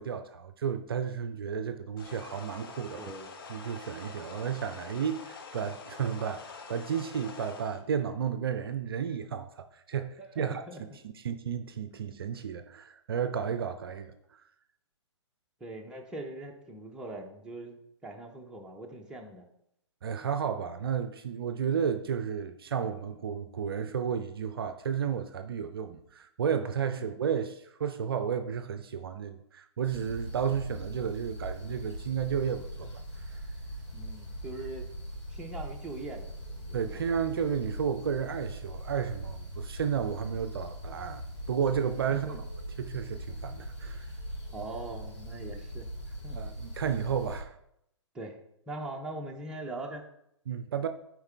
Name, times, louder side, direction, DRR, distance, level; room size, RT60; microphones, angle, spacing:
voice 1, 0.0-3.1 3.5-10.6 11.0-14.1 20.0-32.9 36.7-42.4 42.8-44.1 46.3-47.5 50.5-50.9, right 7 dB, 50° right, 0.5 m, -32 dB
sound 1, 2.0-7.8, left 5 dB, 50° left, 0.8 m, -46 dB
voice 2, 3.0-3.3 10.2-11.0 15.6-19.5 27.0-27.1 33.9-34.9 35.3-37.0 42.1-42.4 44.5-46.4 48.1-48.4 48.7-50.0, right 2 dB, 5° right, 0.7 m, -42 dB
sound 2, 29.8-47.4, equal, 70° left, 2.7 m, -41 dB
7.9 x 4.6 x 3.4 m
figure-of-eight pair, 120°, 15 cm